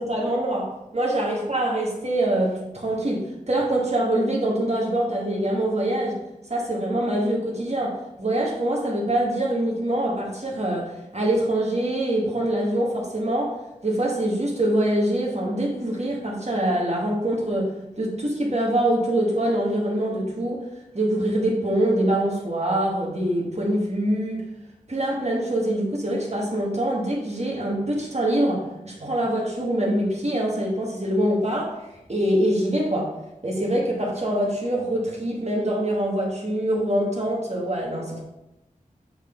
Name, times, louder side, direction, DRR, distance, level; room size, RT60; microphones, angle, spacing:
voice 1, 0.0-6.2 6.5-20.6 20.9-24.5 24.9-31.8 32.1-33.1 33.4-38.2, right 1 dB, 45° right, -3 dB, 1.8 m, -24 dB
8.0 x 4.1 x 3.9 m, 0.93 s
wide cardioid pair, 60°, 15 cm